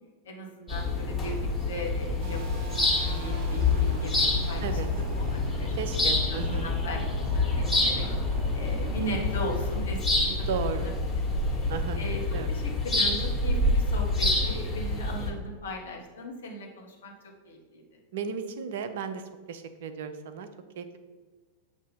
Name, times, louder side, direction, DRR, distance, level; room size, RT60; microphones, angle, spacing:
voice 1, 0.2-5.7 6.3-8.1 8.5-10.3 10.7-10.9 11.5-12.2 12.5-17.1 17.4-17.8, equal, 65° left, 0 dB, 1.3 m, -38 dB
sound 1, 0.7-15.3, left 2 dB, 10° left, 1.7 m, -27 dB
sound 2, 2.2-9.8, right 1 dB, 30° right, 1.0 m, -40 dB
voice 2, 5.8-6.7 10.5-11.0 11.7-12.0 12.3-12.5 18.1-20.5 20.8-21.0, right 6 dB, 55° right, 10 dB, 0.5 m, -34 dB
7.3 x 2.8 x 5.4 m, 1.3 s
figure-of-eight pair, 90°, 0 cm